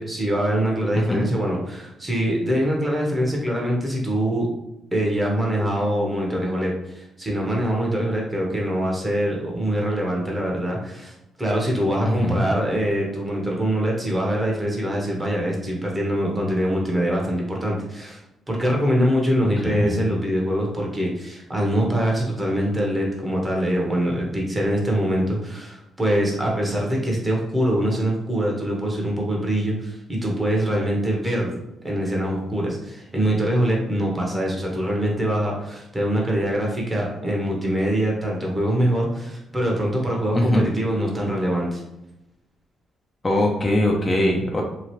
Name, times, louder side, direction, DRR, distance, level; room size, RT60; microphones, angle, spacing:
voice 1, 0.0-4.5 4.9-18.2 18.5-31.5 31.8-41.8, equal, 20° right, -2 dB, 0.9 m, -24 dB
voice 2, 1.0-1.3 12.1-12.4 19.6-20.0 40.3-40.6 43.2-44.6, left 1 dB, 25° left, 0 dB, 0.5 m, -21 dB
2.9 x 2.4 x 3.0 m, 0.89 s
cardioid pair, 90°, 0 cm